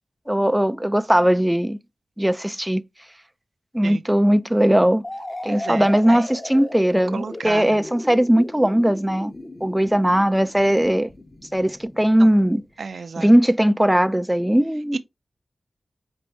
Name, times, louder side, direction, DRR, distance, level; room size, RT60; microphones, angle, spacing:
voice 1, 0.3-1.8 2.2-2.8 3.7-5.0 5.4-9.3 9.6-11.1 11.5-12.6 13.2-15.0, equal, 10° right, 0.3 m, -19 dB
sound 1, 5.0-12.7, left 1 dB, 30° left, 1.1 m, -37 dB
voice 2, 5.5-6.3 7.1-8.1 12.2-12.3 12.8-13.3 14.9-15.0, right 5 dB, 75° right, 0.5 m, -33 dB
5.4 x 2.6 x 3.0 m
cardioid pair, 50°, 0 cm